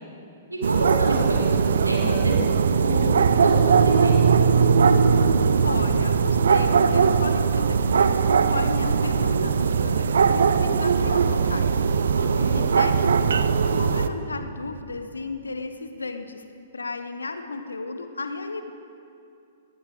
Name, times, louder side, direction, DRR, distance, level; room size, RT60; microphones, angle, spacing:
voice 1, 0.5-2.4 2.7-4.4 12.1-12.6, right 1 dB, 90° right, -3 dB, 3.5 m, -29 dB
sound 1, 0.6-14.1, right 6 dB, 65° right, 0.6 m, -20 dB
voice 2, 5.6-11.8 12.5-16.4 16.7-18.7, left 3 dB, 80° left, 8 dB, 1.1 m, -34 dB
20.0 x 16.5 x 3.8 m, 2.6 s
figure-of-eight pair, 110°, 0 cm